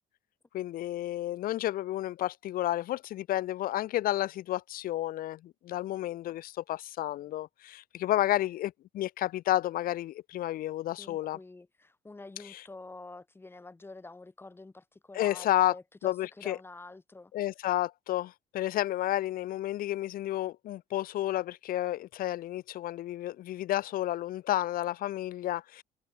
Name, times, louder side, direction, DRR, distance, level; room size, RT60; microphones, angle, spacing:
voice 1, 0.5-11.4 12.5-12.6 15.1-15.7 16.0-16.6 17.3-25.8, left 14 dB, 60° left, 0.5 m, -31 dB
voice 2, 11.0-17.3, left 3 dB, 15° left, 1.3 m, -47 dB
cardioid pair, 110°, 17 cm